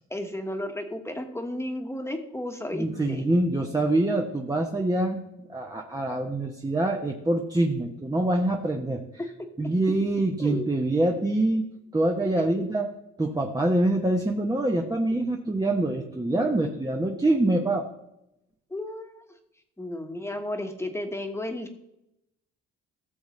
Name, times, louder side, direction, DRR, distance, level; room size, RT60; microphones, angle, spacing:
voice 1, 0.1-3.3 10.4-10.7 12.3-12.4 16.4-16.6 18.7-19.2 19.8-21.7, left 1 dB, 10° left, 5 dB, 1.4 m, -33 dB
voice 2, 2.7-9.0 9.6-11.7 11.9-12.9 13.2-17.9, right 2 dB, 15° right, 1 dB, 1.0 m, -25 dB
16.0 x 6.9 x 3.2 m, 0.85 s
cardioid pair, 90°, 30 cm